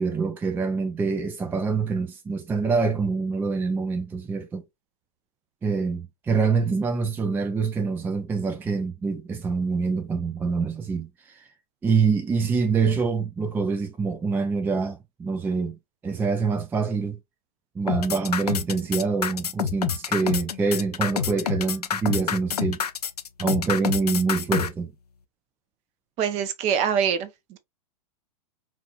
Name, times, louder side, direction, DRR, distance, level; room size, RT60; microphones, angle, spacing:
voice 1, 0.0-4.6 5.6-11.5 11.8-15.8 16.0-17.2 17.8-22.8 23.4-24.9, right 4 dB, 10° right, 0.4 m, -25 dB
sound 1, 17.9-24.7, left 7 dB, 80° left, 0.6 m, -27 dB
voice 2, 26.2-27.6, right 7 dB, 35° right, 0.7 m, -25 dB
4.5 x 2.5 x 2.4 m
figure-of-eight pair, 105°, 20 cm